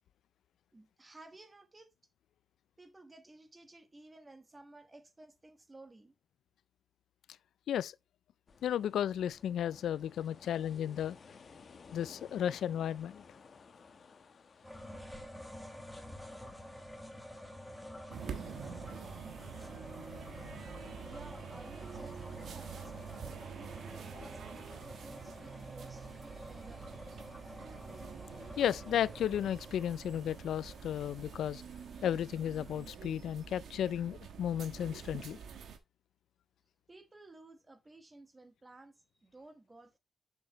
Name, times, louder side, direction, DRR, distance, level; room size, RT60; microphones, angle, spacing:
voice 1, 0.7-1.9 2.8-6.1 21.0-27.0 36.9-40.0, right 2 dB, 20° right, 1.2 m, -55 dB
sound 1, 8.5-24.4, left 5 dB, 40° left, 1.0 m, -59 dB
voice 2, 8.6-11.2 11.9-13.2 28.6-31.6 32.0-35.4, left 10 dB, 75° left, 0.3 m, -34 dB
sound 2, 14.6-32.8, left 1 dB, 5° left, 1.5 m, -50 dB
sound 3, 18.1-35.8, right 7 dB, 70° right, 1.3 m, -47 dB
7.1 x 6.7 x 3.0 m
cardioid pair, 120°, 0 cm